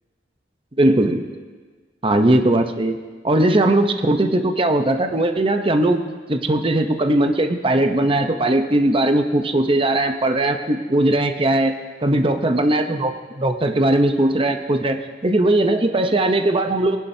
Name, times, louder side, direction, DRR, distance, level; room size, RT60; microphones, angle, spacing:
voice 1, 0.8-1.2 2.0-3.0 3.2-11.7 12.0-15.0 15.2-17.0, right 1 dB, 30° right, 6 dB, 0.8 m, -19 dB
20.5 x 11.5 x 2.8 m, 1.4 s
head